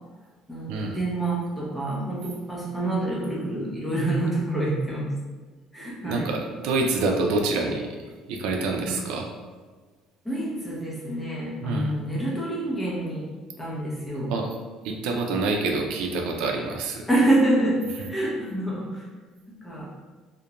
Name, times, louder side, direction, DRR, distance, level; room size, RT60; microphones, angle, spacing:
voice 1, 0.5-5.1 5.7-6.3 8.8-9.0 10.2-13.3 13.6-14.4 17.1-19.0 19.5-19.9, right 1 dB, 5° left, -5 dB, 0.6 m, -27 dB
voice 2, 6.0-7.9 8.3-9.3 11.6-11.9 14.3-14.6 14.8-17.0, right 3 dB, 80° right, 1 dB, 0.3 m, -26 dB
2.4 x 2.1 x 2.8 m, 1.4 s
cardioid pair, 150°, 0 cm